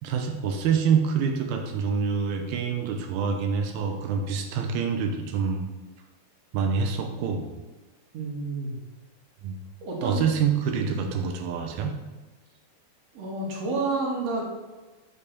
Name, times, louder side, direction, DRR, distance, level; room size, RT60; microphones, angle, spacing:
voice 1, 0.0-5.6 6.5-7.5 9.4-9.6 10.0-12.0, right 6 dB, 85° right, 4 dB, 2.8 m, -26 dB
voice 2, 8.1-8.8 9.8-10.2 10.8-10.9 13.1-14.4, right 3 dB, 50° right, -2 dB, 2.8 m, -29 dB
9.6 x 5.5 x 6.8 m, 1.2 s
omnidirectional pair, 4.2 m